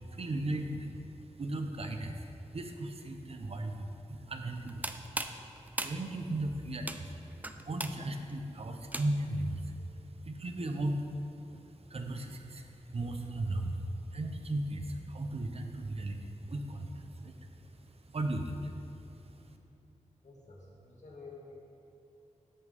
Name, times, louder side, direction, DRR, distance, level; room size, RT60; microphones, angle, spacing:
voice 1, 0.0-19.6, right 1 dB, 55° right, 5 dB, 0.9 m, -37 dB
sound 1, 4.6-9.4, right 1 dB, 15° right, 0.5 m, -40 dB
voice 2, 20.2-21.5, left 3 dB, 65° left, -3 dB, 2.4 m, -51 dB
13.5 x 9.9 x 3.6 m, 2.7 s
wide cardioid pair, 105°, 13 cm